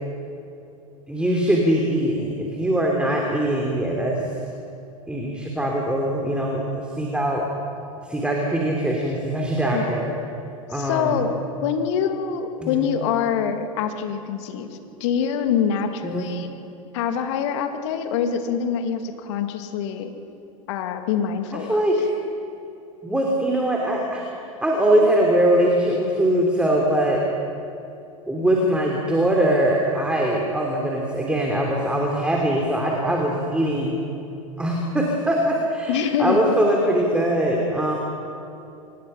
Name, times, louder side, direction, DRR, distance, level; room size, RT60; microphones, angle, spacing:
voice 1, 1.1-4.2 5.1-7.5 8.0-10.1 10.7-11.2 12.6-12.9 16.0-16.3 21.7-22.1 23.0-24.2 24.6-27.2 28.3-34.0 34.6-37.9, right 1 dB, 5° right, -1 dB, 3.1 m, -22 dB
voice 2, 9.7-10.1 10.7-14.7 15.0-16.6 16.9-20.1 20.7-21.9 35.9-36.4, left 7 dB, 55° left, 6 dB, 2.3 m, -25 dB
26.5 x 20.0 x 5.8 m, 2.8 s
figure-of-eight pair, 90°, 18 cm